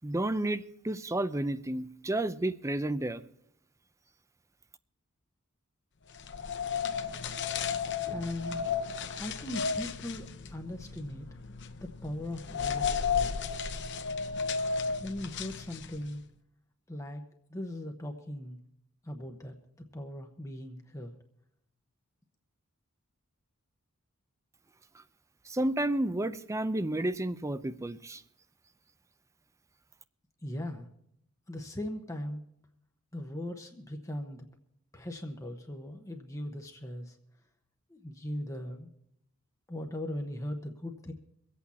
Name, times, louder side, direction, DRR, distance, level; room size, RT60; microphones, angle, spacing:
voice 1, 0.0-3.2 25.5-28.2, right 1 dB, 15° right, 13 dB, 0.5 m, -31 dB
sound 1, 6.2-16.1, left 6 dB, 55° left, 0.8 m, -34 dB
voice 2, 8.1-8.7 9.2-11.3 11.8-13.3 15.0-16.2 16.9-17.2 17.5-18.6 19.0-21.2 30.4-30.9 31.5-32.4 33.1-34.5 34.9-37.2 37.9-38.9 39.7-41.1, left 1 dB, 15° left, 3 dB, 0.9 m, -39 dB
23.5 x 8.4 x 4.2 m, 0.77 s
head